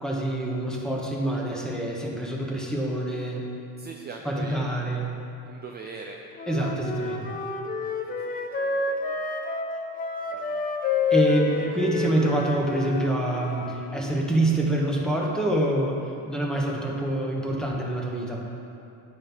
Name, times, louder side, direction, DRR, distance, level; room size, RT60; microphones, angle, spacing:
voice 1, 0.0-3.4 4.2-5.1 6.5-7.3 11.1-18.4, right 1 dB, ahead, -2 dB, 1.0 m, -26 dB
voice 2, 3.8-5.1 5.4-6.2 8.0-9.2 10.3-10.6 11.5-12.2, right 4 dB, 30° right, 2 dB, 0.4 m, -42 dB
Wind instrument woodwind instrument, 6.4-13.8, left 4 dB, 25° left, 0.6 m, -29 dB
8.9 x 3.0 x 5.8 m, 2.7 s
supercardioid pair, 100°, 35 cm